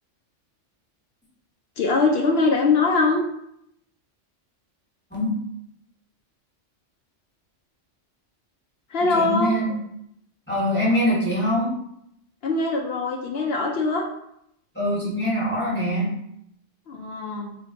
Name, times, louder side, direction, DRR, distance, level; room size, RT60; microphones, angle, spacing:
voice 1, 1.8-3.2 8.9-9.5 12.4-14.0 16.9-17.6, left 3 dB, 65° left, 1 dB, 0.7 m, -22 dB
voice 2, 9.0-9.7 10.5-11.7 14.7-16.1, equal, 10° left, -7 dB, 1.3 m, -23 dB
3.5 x 2.8 x 2.9 m, 0.76 s
omnidirectional pair, 1.3 m